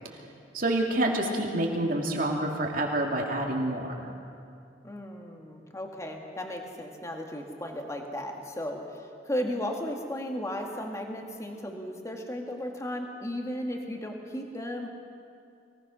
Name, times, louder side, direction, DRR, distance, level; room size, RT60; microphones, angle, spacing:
voice 1, 0.5-3.9, right 1 dB, 50° right, 0 dB, 2.7 m, -27 dB
voice 2, 4.8-14.9, left 1 dB, 15° left, 2 dB, 1.8 m, -35 dB
24.0 x 18.0 x 6.2 m, 2.5 s
head